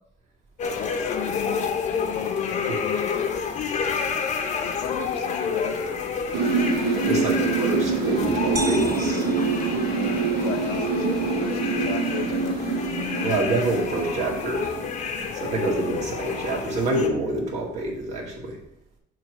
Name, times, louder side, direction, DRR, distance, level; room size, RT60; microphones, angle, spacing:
sound 1, 0.6-17.1, left 5 dB, 45° left, 0.9 m, -29 dB
voice 1, 0.8-1.7 2.1-3.3 4.6-5.8 10.4-13.3, left 11 dB, 70° left, 10 dB, 0.5 m, -35 dB
sound 2, 6.3-15.2, right 4 dB, 70° right, 0.9 m, -25 dB
voice 2, 7.0-9.3 13.2-14.7 15.3-18.6, right 2 dB, 40° right, -2 dB, 2.0 m, -26 dB
sound 3, 8.6-10.5, right 3 dB, 20° right, 0.4 m, -36 dB
7.3 x 3.2 x 5.8 m, 0.79 s
cardioid pair, 145°, 17 cm